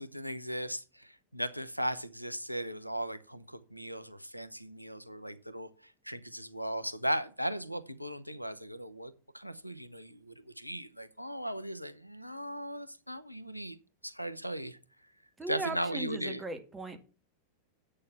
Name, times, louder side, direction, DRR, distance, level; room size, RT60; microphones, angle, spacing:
voice 1, 0.0-13.8 14.0-14.8 15.5-16.4, equal, 90° left, 0.8 m, -37 dB
voice 2, 15.4-17.0, right 2 dB, 10° right, 1.9 m, -38 dB
8.6 x 6.7 x 5.7 m
figure-of-eight pair, 90°, 0 cm